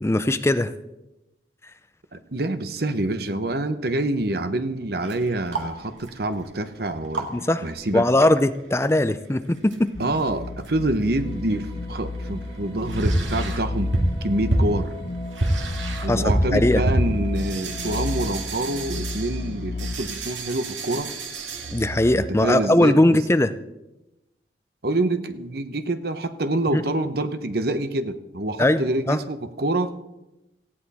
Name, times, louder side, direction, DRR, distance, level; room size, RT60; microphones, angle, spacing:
voice 1, 0.0-0.7 7.3-7.6 7.9-9.9 16.1-16.8 21.7-23.5 26.7-26.8 28.6-29.2, left 1 dB, 15° left, 12 dB, 0.4 m, -20 dB
voice 2, 2.1-7.3 7.6-8.1 10.0-13.9 14.2-14.9 16.0-21.1 22.4-23.2 24.8-30.0, right 2 dB, 55° right, 10 dB, 0.9 m, -26 dB
sound 1, 5.0-8.0 8.2-8.3 8.6-8.7 9.5-10.3 10.6-11.3 11.6-22.2, right 1 dB, 85° right, 2.2 m, -29 dB
sound 2, 9.9-20.0, left 2 dB, 45° left, 0.8 m, -31 dB
sound 3, 11.1-18.4, right 1 dB, 30° right, 2.5 m, -44 dB
18.0 x 15.0 x 4.2 m, 0.96 s
head